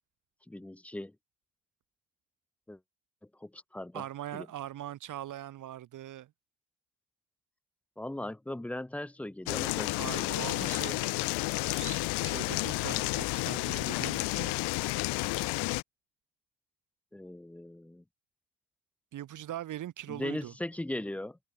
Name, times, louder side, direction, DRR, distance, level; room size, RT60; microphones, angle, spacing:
voice 1, 0.5-1.1 2.7-2.8 3.4-4.0 4.3-4.5 8.0-10.3 17.1-18.0 20.1-21.4, left 1 dB, 5° left, 0.6 m, -38 dB
voice 2, 3.9-6.3 10.0-14.6 19.1-20.5, right 12 dB, 50° right, 2.2 m, -41 dB
sound 1, 9.5-15.8, left 25 dB, 80° left, 0.7 m, -31 dB
cardioid pair, 145°, 39 cm